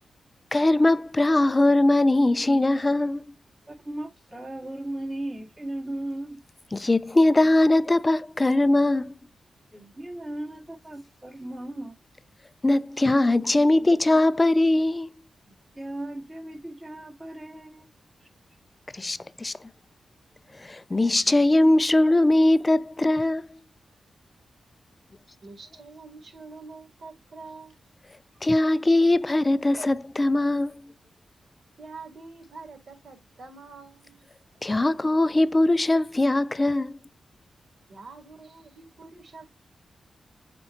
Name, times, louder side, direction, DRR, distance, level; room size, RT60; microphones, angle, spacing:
voice 1, 0.5-3.2 6.7-9.1 12.6-15.1 18.9-19.5 20.6-23.6 28.4-30.9 34.6-37.0, left 2 dB, 20° left, 0.4 m, -21 dB
voice 2, 3.7-6.4 9.7-12.0 15.8-17.9 18.2-18.3, right 1 dB, 15° right, 2.1 m, -36 dB
voice 3, 25.4-27.8 31.8-34.3 37.9-39.6, right 4 dB, 55° right, 2.9 m, -45 dB
8.1 x 4.4 x 2.9 m
wide cardioid pair, 165°, 0 cm